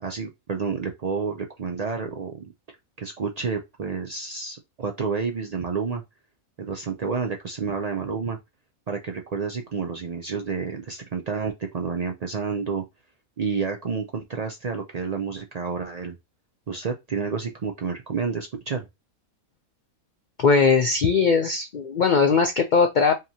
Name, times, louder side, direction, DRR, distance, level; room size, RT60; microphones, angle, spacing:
voice 1, 0.0-2.5 3.0-6.0 6.6-8.4 8.9-12.8 13.4-16.2 16.7-18.9, right 5 dB, 75° right, 0.3 m, -29 dB
voice 2, 20.4-23.2, left 5 dB, 55° left, 0.5 m, -19 dB
5.0 x 2.9 x 2.8 m
omnidirectional pair, 1.5 m